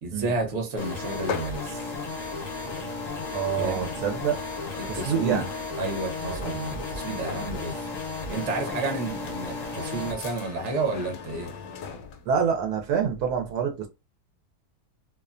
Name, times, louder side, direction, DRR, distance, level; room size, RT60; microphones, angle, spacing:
voice 1, 0.0-1.8 3.6-3.9 4.8-5.5 5.8-7.9 8.3-11.5, right 3 dB, 55° right, 1.1 m, -31 dB
sound 1, 0.8-10.1, left 3 dB, 45° left, 0.5 m, -35 dB
sound 2, 1.0-12.3, left 6 dB, 70° left, 0.9 m, -40 dB
voice 2, 3.3-4.4 4.9-5.4 6.2-6.6 12.3-13.9, right 7 dB, 85° right, 1.2 m, -27 dB
2.7 x 2.2 x 2.4 m
omnidirectional pair, 1.6 m